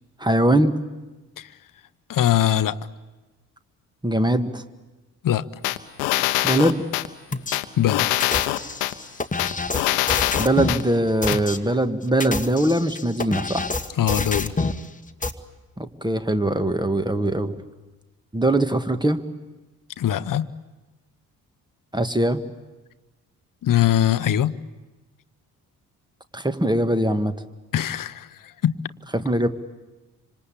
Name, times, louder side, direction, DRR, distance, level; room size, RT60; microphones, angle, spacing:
voice 1, 0.2-0.7 4.0-4.6 6.4-6.9 9.8-9.9 10.4-13.7 15.8-17.6 18.3-19.2 21.9-22.4 26.3-27.3 29.1-29.5, right 1 dB, 10° right, 1.8 m, -21 dB
voice 2, 2.1-2.8 5.2-5.5 7.8-8.1 14.0-14.5 20.0-20.5 23.6-24.5 27.7-28.3 28.6-28.7, left 11 dB, 45° left, 1.0 m, -21 dB
sound 1, 5.6-7.1 7.5-8.9 9.4-10.8 11.3-11.4, left 17 dB, 80° left, 1.0 m, -23 dB
sound 2, 7.3-7.6 8.2-10.8 11.2-11.6 12.1-14.8 15.2-15.3, left 3 dB, 15° left, 1.5 m, -27 dB
26.0 x 26.0 x 8.6 m
hypercardioid pair, 40°, 45 cm